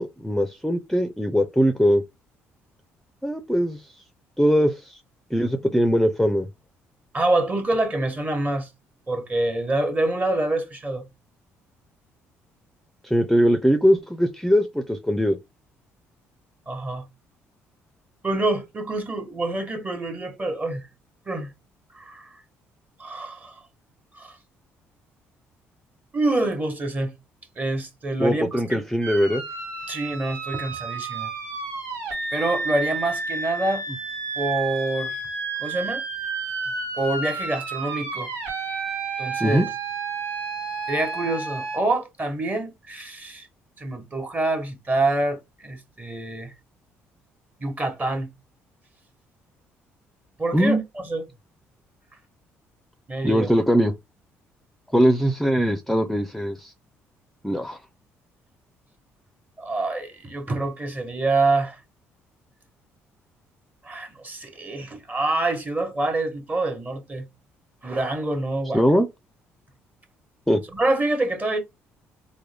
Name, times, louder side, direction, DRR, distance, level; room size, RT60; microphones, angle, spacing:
voice 1, 0.0-2.0 3.2-3.8 4.4-5.0 5.3-6.5 13.0-15.4 28.2-29.4 39.4-39.7 50.5-50.8 53.2-53.9 54.9-56.7 57.4-57.8 68.7-69.1 70.5-70.6, equal, 5° left, 0.5 m, -21 dB
voice 2, 7.1-8.7 9.1-11.0 16.7-17.0 18.2-20.8 21.3-21.5 21.9-22.3 23.0-23.5 24.1-24.3 26.1-27.1 27.6-28.8 29.9-31.3 32.3-33.8 34.4-35.1 35.6-36.0 37.0-38.3 39.2-39.6 40.9-43.5 43.8-46.5 47.6-48.3 50.4-50.8 51.1-51.2 53.1-53.5 59.6-61.8 63.8-67.2 67.8-68.8 70.7-71.6, right 2 dB, 30° right, 1.2 m, -26 dB
sound 1, 29.0-41.8, right 4 dB, 90° right, 1.2 m, -31 dB
3.5 x 2.2 x 3.4 m
supercardioid pair, 65°, 6 cm